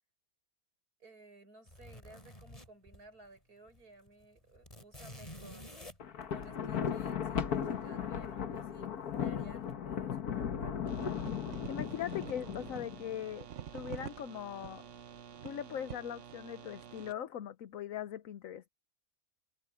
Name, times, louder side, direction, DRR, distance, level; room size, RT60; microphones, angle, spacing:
voice 1, 1.0-5.9 6.3-10.8, right 2 dB, 85° right, 7.2 m, -57 dB
sound 1, 1.7-3.4 3.7-3.8 4.1-7.1 8.6-9.1 9.4-9.7, left 1 dB, 20° left, 4.4 m, -51 dB
Thunder, 6.0-13.2, left 8 dB, 85° left, 1.8 m, -37 dB
sound 2, 10.9-17.1, right 9 dB, 60° right, 1.2 m, -47 dB
voice 2, 11.7-13.5 13.7-14.8 15.4-18.7, left 10 dB, 65° left, 1.2 m, -40 dB
omnidirectional pair, 1.6 m